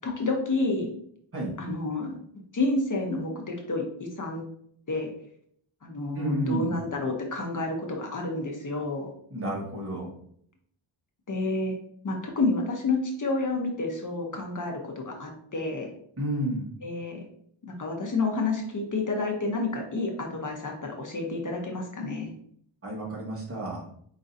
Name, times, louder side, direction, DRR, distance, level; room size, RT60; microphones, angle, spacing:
voice 1, 0.0-0.9 1.6-2.2 2.5-4.4 4.9-5.1 5.8-9.1 11.3-11.7 12.0-15.9 16.8-17.2 17.7-22.3, left 3 dB, 40° left, 1 dB, 0.9 m, -29 dB
voice 2, 6.1-6.7 9.3-10.1 16.2-16.6 22.8-23.8, right 1 dB, 30° right, -5 dB, 1.5 m, -30 dB
5.0 x 3.8 x 2.7 m, 0.65 s
wide cardioid pair, 150°, 48 cm